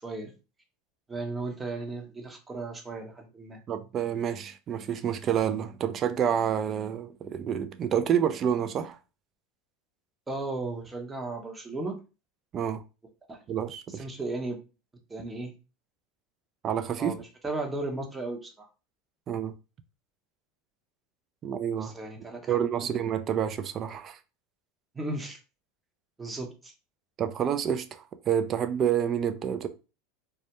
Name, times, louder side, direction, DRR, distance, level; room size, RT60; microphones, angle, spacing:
voice 1, 0.0-0.3 1.1-3.6 10.3-12.0 13.3-13.4 14.0-14.6 15.1-15.5 17.0-18.7 21.8-22.6 22.9-23.0 24.9-25.4 26.2-26.7, right 2 dB, 15° right, 0.7 m, -35 dB
voice 2, 3.7-9.0 12.5-12.8 13.5-14.1 16.6-17.2 19.3-19.5 21.4-21.9 22.5-24.2 27.2-29.7, right 9 dB, 40° right, 0.3 m, -28 dB
2.2 x 2.1 x 2.8 m
hypercardioid pair, 95°, 0 cm